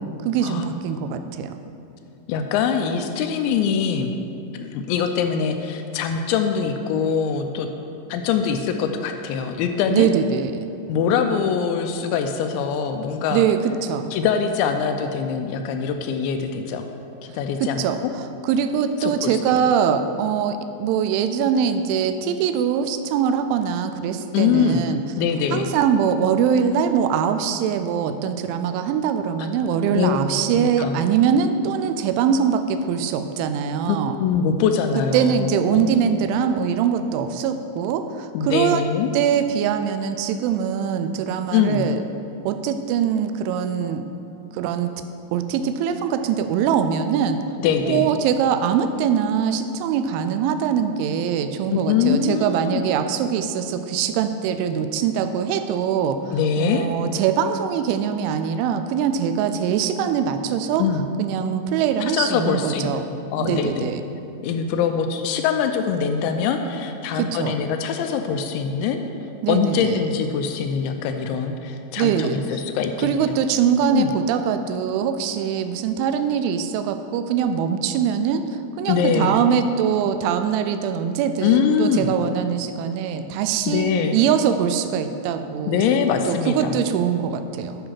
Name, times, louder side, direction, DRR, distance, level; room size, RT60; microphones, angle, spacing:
voice 1, 0.2-1.5 9.9-10.7 13.3-14.1 17.6-25.0 25.5-34.2 35.1-38.8 39.1-42.0 42.5-44.0 44.5-44.9 45.3-47.4 47.9-56.2 56.6-60.9 61.2-63.1 63.4-64.0 67.2-67.6 69.4-69.9 72.0-72.4 73.0-78.5 78.8-85.8 86.3-87.8, right 8 dB, 85° right, 9 dB, 3.0 m, -22 dB
voice 2, 2.3-4.2 4.5-7.7 8.1-10.1 10.9-13.4 14.1-16.9 17.2-18.1 19.0-19.6 24.3-24.9 25.2-25.7 29.9-30.2 30.5-31.0 33.9-35.9 38.3-39.1 41.5-41.9 47.6-48.1 51.7-52.8 56.3-56.9 60.8-61.1 62.0-62.9 63.3-64.0 64.4-69.0 69.5-73.3 73.9-74.1 78.9-79.4 81.4-82.1 83.7-84.2 85.7-86.9, left 6 dB, 85° left, 6 dB, 2.7 m, -23 dB
10.0 x 5.6 x 5.7 m, 2.6 s
omnidirectional pair, 5.4 m